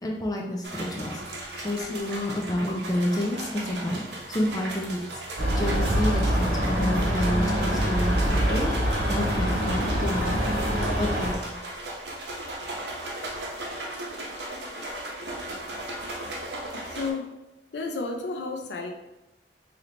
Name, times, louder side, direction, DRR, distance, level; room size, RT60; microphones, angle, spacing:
voice 1, 0.0-4.0 4.3-5.2 5.6-8.7 9.1-10.5 11.0-11.6, left 1 dB, 20° left, 0 dB, 0.5 m, -29 dB
sound 1, 0.6-17.1, right 1 dB, 80° right, 0.7 m, -37 dB
sound 2, 5.4-11.3, equal, 60° right, 1.3 m, -25 dB
voice 2, 16.8-17.3 17.7-18.9, left 3 dB, 80° left, 3 dB, 0.5 m, -32 dB
3.3 x 2.9 x 3.8 m, 0.97 s
head